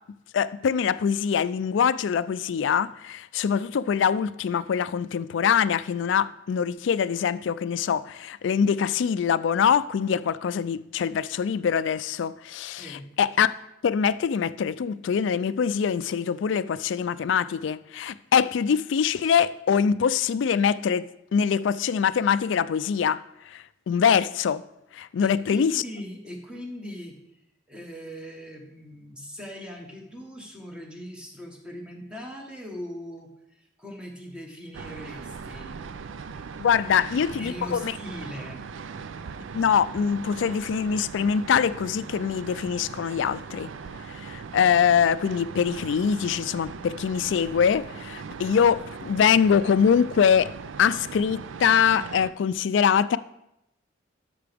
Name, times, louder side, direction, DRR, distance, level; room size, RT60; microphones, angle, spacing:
voice 1, 0.3-13.5 13.8-23.2 23.5-24.6 24.9-25.8 36.6-37.9 39.5-43.7 44.1-50.5 50.8-53.2, left 7 dB, 70° left, 0.3 m, -24 dB
voice 2, 12.8-13.1 25.2-27.1 27.7-35.8 37.3-38.6, equal, 5° right, 1.3 m, -40 dB
sound 1, 34.7-52.3, right 5 dB, 80° right, 0.4 m, -39 dB
12.5 x 5.9 x 3.5 m
head